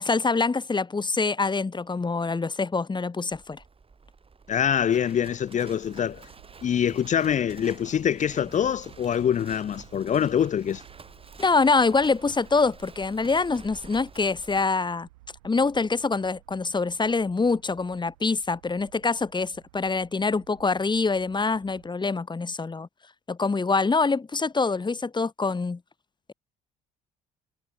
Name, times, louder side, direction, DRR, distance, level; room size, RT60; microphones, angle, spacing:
voice 1, 0.0-3.6 11.4-15.1 15.4-22.9 23.3-25.8, left 4 dB, 25° left, 3.2 m, -25 dB
Livestock farm animals working animals, 3.3-14.7, right 4 dB, 30° right, 6.5 m, -49 dB
voice 2, 4.5-6.3 6.6-10.8, left 9 dB, 40° left, 0.7 m, -25 dB
sound 1, 5.8-21.9, right 19 dB, 90° right, 6.4 m, -56 dB
hypercardioid pair, 60°, 18 cm